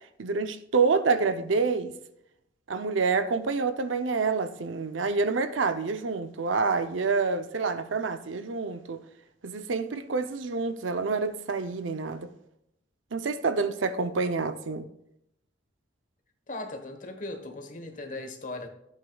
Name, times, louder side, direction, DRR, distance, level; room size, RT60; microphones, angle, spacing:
voice 1, 0.2-1.9 2.7-9.0 9.4-12.3 13.1-14.9, right 4 dB, 85° right, 0.6 m, -27 dB
voice 2, 16.5-18.7, left 2 dB, 40° left, 1.2 m, -38 dB
12.5 x 8.4 x 2.3 m
head